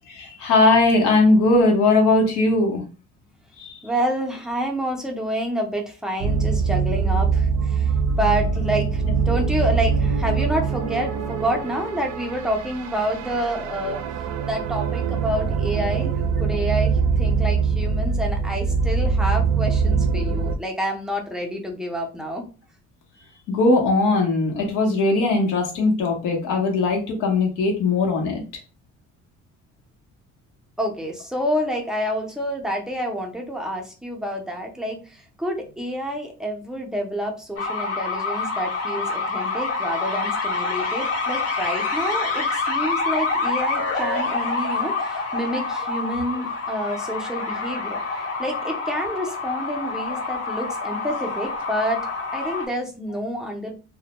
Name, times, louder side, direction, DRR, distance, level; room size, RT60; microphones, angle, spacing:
voice 1, 0.1-2.8 3.6-3.8 23.5-28.4, left 2 dB, 90° left, 2 dB, 0.8 m, -19 dB
voice 2, 3.8-7.9 8.2-14.0 14.4-22.4 30.8-48.0 48.4-52.0 52.3-53.7, equal, ahead, 0 dB, 0.5 m, -28 dB
sound 1, 6.2-20.6, right 5 dB, 75° right, 0.4 m, -23 dB
sound 2, 37.6-52.7, left 3 dB, 55° left, 0.6 m, -27 dB
2.1 x 2.1 x 2.8 m, 0.34 s
cardioid pair, 125°, 30 cm